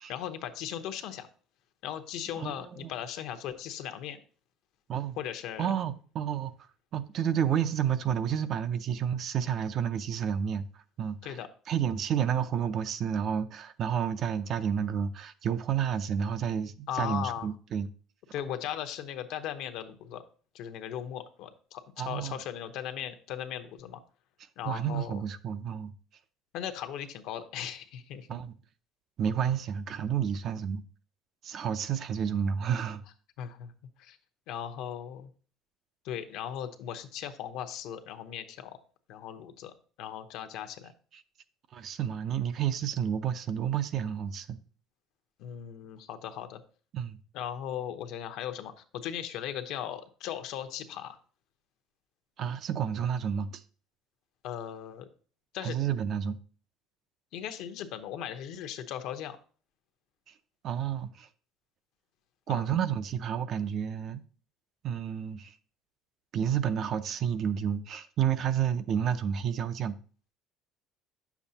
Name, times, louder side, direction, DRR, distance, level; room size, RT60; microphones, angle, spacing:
voice 1, 0.1-1.3 1.8-4.2 5.2-5.7 11.2-11.5 16.9-17.5 18.3-20.2 20.5-24.0 24.6-25.2 26.5-28.4 33.4-33.7 34.0-34.2 34.5-35.3 36.0-38.8 39.1-39.7 40.0-40.9 45.4-46.6 47.3-51.2 54.4-55.1 55.5-55.8 57.3-59.4 62.5-62.7, left 10 dB, 60° left, 0.8 m, -38 dB
voice 2, 5.6-6.5 6.9-10.6 11.0-11.4 11.7-17.9 22.0-22.3 24.7-25.9 28.3-28.5 29.2-30.8 31.4-33.0 41.7-44.6 46.9-47.2 52.4-53.6 55.6-56.4 60.6-61.3 62.5-64.2 64.8-65.5 66.3-70.0, right 8 dB, 35° right, 0.4 m, -30 dB
9.6 x 7.1 x 2.8 m
cardioid pair, 175°, 0 cm